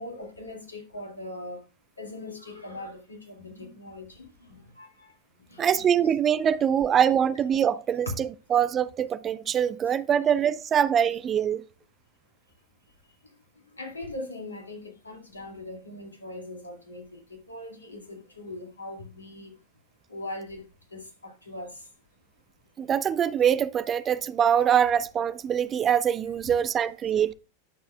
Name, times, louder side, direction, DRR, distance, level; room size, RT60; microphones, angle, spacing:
voice 1, 0.0-1.6 2.0-5.1 5.5-5.9 13.8-19.5 20.1-20.6 20.9-21.7 26.5-26.6, left 1 dB, 80° left, 2.3 m, -40 dB
voice 2, 5.6-11.6 22.8-27.3, right 8 dB, 25° right, 0.4 m, -24 dB
10.5 x 7.0 x 2.4 m
figure-of-eight pair, 90°, 0 cm